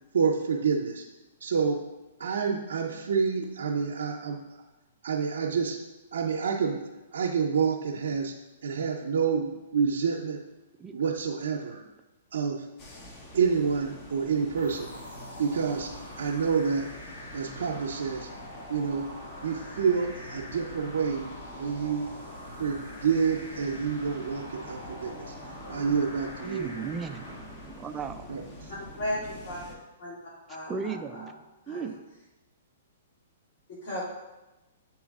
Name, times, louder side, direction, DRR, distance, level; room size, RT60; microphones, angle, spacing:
voice 1, 0.1-1.0 1.4-1.8 2.2-4.4 5.0-5.8 6.1-6.8 7.1-8.3 8.6-10.4 10.9-11.8 12.3-12.6 13.3-14.9 15.4-15.9 16.2-16.9 17.3-18.3 18.7-19.1 19.4-21.3 21.6-22.0 22.6-25.3 25.7-26.7 28.3-28.4, right 6 dB, 80° right, -1 dB, 0.6 m, -28 dB
voice 2, 10.8-11.1 26.4-28.3 30.7-31.3 31.7-31.9, right 6 dB, 20° right, 7 dB, 0.4 m, -36 dB
sound 1, 12.8-29.8, left 1 dB, 30° left, 1.0 m, -46 dB
sound 2, 14.6-28.1, left 1 dB, 80° left, 1.5 m, -45 dB
voice 3, 29.0-29.7 30.0-30.2 30.5-31.3 31.7-31.9 33.7-34.0, left 1 dB, 55° left, -7 dB, 2.1 m, -35 dB
8.4 x 3.1 x 3.6 m, 1.0 s
hypercardioid pair, 135°, 0 cm